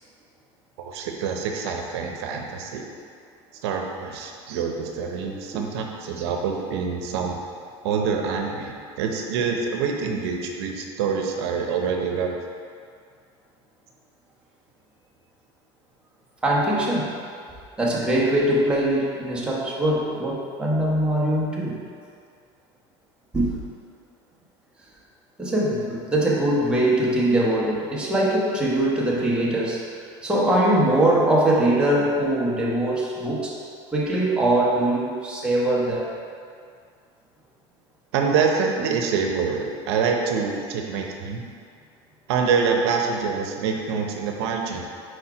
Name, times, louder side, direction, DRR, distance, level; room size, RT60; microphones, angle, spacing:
voice 1, 0.8-2.8 3.6-7.4 7.8-12.4 38.1-41.4 42.3-44.8, right 5 dB, 90° right, 2 dB, 0.7 m, -26 dB
voice 2, 16.4-17.1 17.8-21.8 23.3-23.5 25.4-29.8 30.2-33.5 33.9-36.1, right 1 dB, 5° right, -5 dB, 1.1 m, -22 dB
4.7 x 4.3 x 4.8 m, 2.2 s
supercardioid pair, 130°, 13 cm